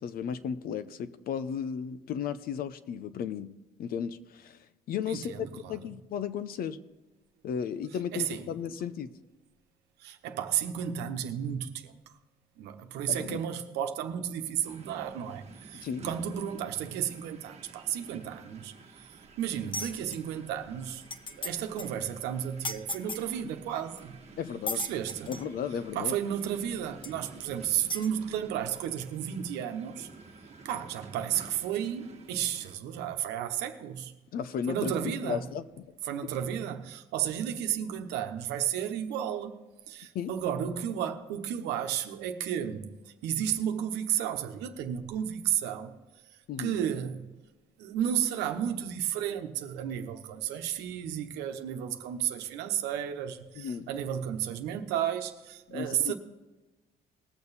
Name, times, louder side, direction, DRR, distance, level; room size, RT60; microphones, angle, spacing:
voice 1, 0.0-4.6 4.9-6.8 7.4-9.1 13.1-13.4 15.7-16.1 24.4-24.9 25.3-26.2 34.3-35.9 40.1-40.3 46.5-46.7 53.6-53.9 55.7-56.2, left 7 dB, 60° left, 0.8 m, -35 dB
voice 2, 5.1-5.8 8.1-8.4 10.0-12.0 12.6-18.7 19.4-21.0 21.4-24.2 24.7-25.4 25.9-30.1 30.6-34.1 34.7-35.4 36.0-39.6 39.9-43.0 43.2-46.0 46.6-47.3 47.8-56.2, right 9 dB, 90° right, 1.0 m, -33 dB
sound 1, 14.6-32.8, right 4 dB, 40° right, 1.4 m, -51 dB
sound 2, 19.7-20.2 20.7-20.8 21.0-21.5 21.8-21.9 22.6-23.3 24.0-24.1 24.7-25.5 26.4-26.5 27.0-27.1 27.9-28.1, left 3 dB, 30° left, 0.8 m, -36 dB
20.0 x 6.9 x 4.2 m
cardioid pair, 110°, 17 cm